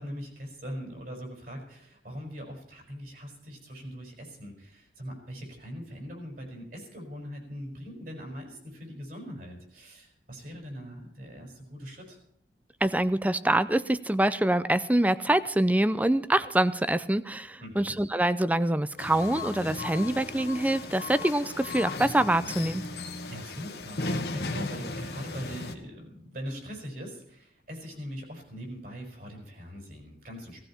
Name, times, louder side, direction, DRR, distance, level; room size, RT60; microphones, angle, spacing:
voice 1, 0.0-12.2 17.6-17.9 23.3-30.6, equal, 55° right, 1 dB, 5.3 m, -41 dB
voice 2, 12.8-22.8, right 1 dB, 10° right, 15 dB, 0.5 m, -25 dB
sound 1, 19.0-25.8, left 2 dB, 65° left, 1.5 m, -36 dB
17.0 x 15.5 x 4.4 m, 0.69 s
head